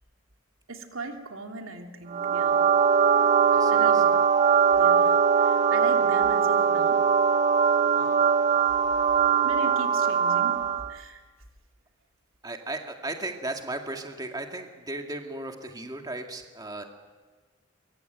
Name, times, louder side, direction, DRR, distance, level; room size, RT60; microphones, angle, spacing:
voice 1, 0.7-2.6 3.7-4.1 4.8-7.2 9.4-10.6 10.9-11.2, right 2 dB, 90° right, 4 dB, 2.8 m, -39 dB
sound 1, 2.1-10.9, right 6 dB, 35° right, 1.0 m, -21 dB
voice 2, 3.5-4.1 7.9-8.2 12.4-16.8, right 2 dB, 20° right, 4 dB, 2.1 m, -36 dB
23.5 x 23.5 x 9.2 m, 1.4 s
head